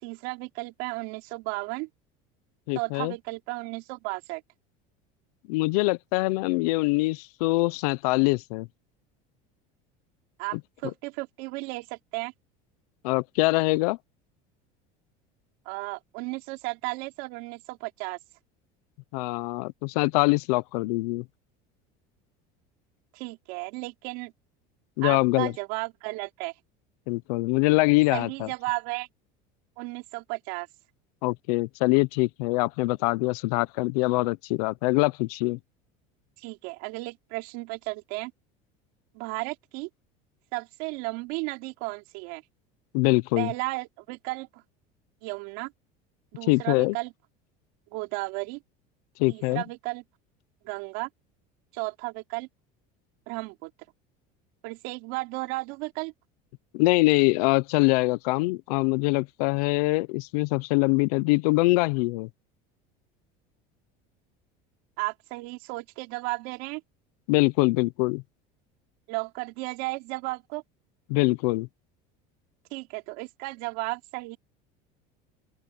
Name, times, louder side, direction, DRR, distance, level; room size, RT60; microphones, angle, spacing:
voice 1, 0.0-1.9 2.7-4.4 10.4-12.3 15.7-18.2 23.1-24.3 25.0-26.5 28.1-29.1 29.8-30.7 36.4-38.3 39.1-39.9 40.5-42.4 43.4-44.6 45.2-45.7 46.3-47.1 47.9-48.6 49.3-50.0 50.6-51.1 51.7-52.5 53.3-53.7 54.6-56.1 65.0-66.8 69.1-70.6 72.7-74.4, right 26 dB, 70° right, 4.1 m, -34 dB
voice 2, 2.7-3.1 5.5-8.7 13.0-14.0 19.1-21.2 25.0-25.5 27.1-28.5 31.2-35.6 42.9-43.5 46.5-47.0 49.2-49.6 56.7-62.3 67.3-68.2 71.1-71.7, left 24 dB, 85° left, 0.8 m, -24 dB
open air
cardioid pair, 160°, 19 cm